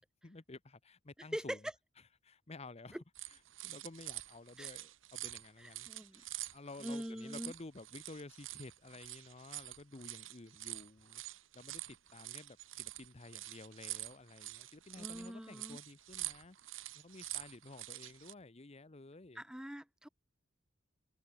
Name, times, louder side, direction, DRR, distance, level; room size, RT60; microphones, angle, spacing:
voice 1, 0.2-1.7 2.2-11.2 11.5-16.6 16.9-19.4, left 2 dB, 30° left, 0.9 m, -53 dB
sound 1, 3.1-18.3, right 16 dB, 70° right, 1.4 m, -47 dB
voice 2, 5.6-6.2 6.8-7.5 15.0-15.8 19.4-20.1, equal, 5° right, 0.7 m, -43 dB
head